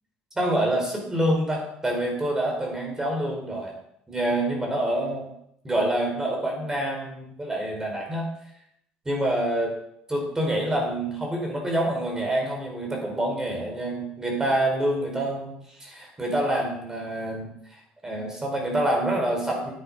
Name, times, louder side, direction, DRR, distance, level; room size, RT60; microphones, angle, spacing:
voice 1, 0.3-3.7 4.1-5.3 5.6-8.3 9.0-9.7 10.1-19.7, right 1 dB, 15° right, 0 dB, 5.0 m, -27 dB
10.5 x 9.6 x 5.1 m, 0.75 s
cardioid pair, 95°, 3 cm